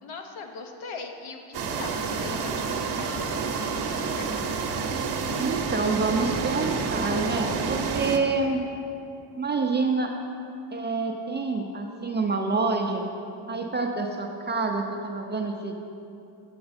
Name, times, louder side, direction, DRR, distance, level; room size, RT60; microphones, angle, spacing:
voice 1, 0.0-4.5, left 4 dB, 70° left, 4 dB, 1.0 m, -41 dB
sound 1, 1.5-8.2, right 5 dB, 50° right, 0.8 m, -29 dB
voice 2, 5.4-8.6 9.4-10.1 10.7-13.1 13.5-15.7, right 3 dB, 25° right, 2 dB, 0.4 m, -27 dB
7.8 x 7.6 x 4.1 m, 2.6 s
cardioid pair, 120°, 50 cm